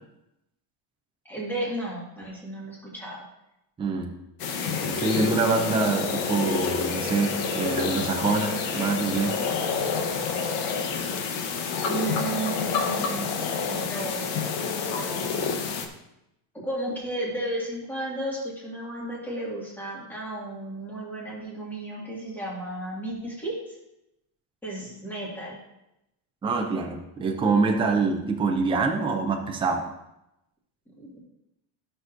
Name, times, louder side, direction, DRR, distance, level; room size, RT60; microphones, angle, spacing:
voice 1, 1.2-3.2 11.9-14.5 14.9-15.3 16.5-23.7 24.6-25.6 31.0-31.2, right 1 dB, 5° left, -5 dB, 1.8 m, -34 dB
voice 2, 3.8-4.1 4.8-9.4 26.4-29.9, right 4 dB, 10° right, 2 dB, 0.4 m, -25 dB
sound 1, 4.4-15.9, left 5 dB, 65° left, 1.1 m, -28 dB
12.5 x 6.2 x 2.5 m, 0.87 s
cardioid pair, 175°, 50 cm